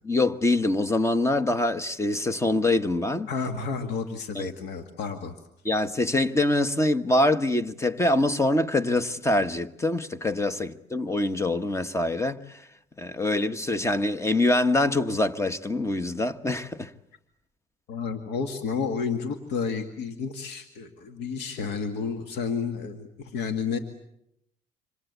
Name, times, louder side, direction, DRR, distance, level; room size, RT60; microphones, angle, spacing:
voice 1, 0.0-3.3 4.3-4.5 5.6-12.6 13.0-16.9, left 2 dB, 15° left, 1.3 m, -24 dB
voice 2, 3.3-5.3 17.9-23.8, left 5 dB, 80° left, 2.2 m, -31 dB
27.0 x 26.0 x 8.3 m
cardioid pair, 110°, 17 cm